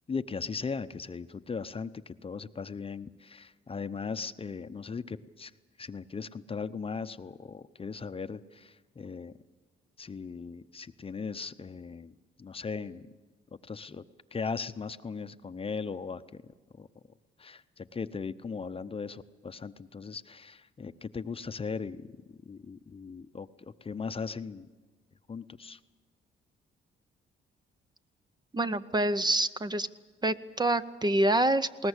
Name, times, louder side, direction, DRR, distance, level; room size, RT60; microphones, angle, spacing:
voice 1, 0.1-5.5 5.8-9.3 10.0-13.1 13.6-14.0 14.3-16.4 16.8-16.9 17.4-24.7 25.3-25.8, left 5 dB, 30° left, 11 dB, 0.7 m, -38 dB
voice 2, 28.5-29.9 30.2-31.9, right 1 dB, 20° right, 13 dB, 0.6 m, -26 dB
20.5 x 19.0 x 8.1 m, 1.3 s
cardioid pair, 90°, 20 cm